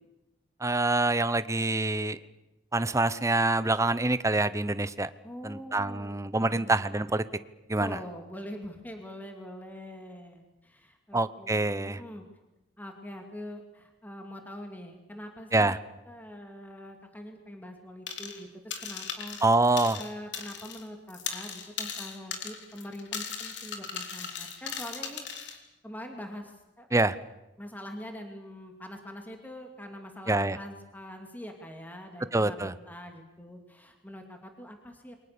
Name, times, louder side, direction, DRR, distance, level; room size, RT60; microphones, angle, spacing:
voice 1, 0.6-2.2 2.7-5.1 5.4-7.2 7.7-8.0 11.1-12.0 15.5-15.8 19.4-20.0 26.9-27.2 30.3-30.6 32.3-32.7, right 2 dB, 15° right, 14 dB, 0.9 m, -26 dB
voice 2, 5.2-6.9 7.8-12.3 12.8-15.8 16.1-19.4 19.7-25.5 25.8-26.9 27.6-35.1, equal, 10° left, 4 dB, 2.7 m, -44 dB
sound 1, 18.1-18.4 18.7-20.8 21.1-25.6, left 6 dB, 75° left, 3.5 m, -38 dB
29.0 x 23.5 x 6.9 m, 0.97 s
head